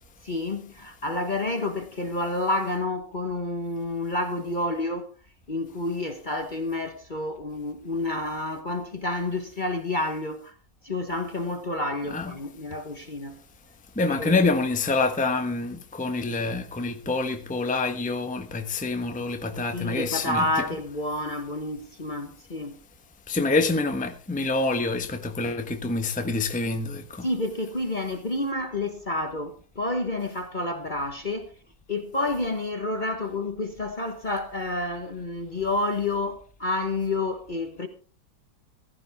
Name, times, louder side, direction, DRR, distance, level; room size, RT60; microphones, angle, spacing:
voice 1, 0.2-5.1 5.5-10.5 10.8-13.4 14.1-14.5 19.7-22.8 27.2-31.5 31.9-37.9, left 2 dB, 30° left, 1.2 m, -29 dB
voice 2, 14.0-20.4 23.3-27.3, left 3 dB, 5° left, 1.0 m, -26 dB
15.5 x 14.0 x 3.5 m
omnidirectional pair, 1.9 m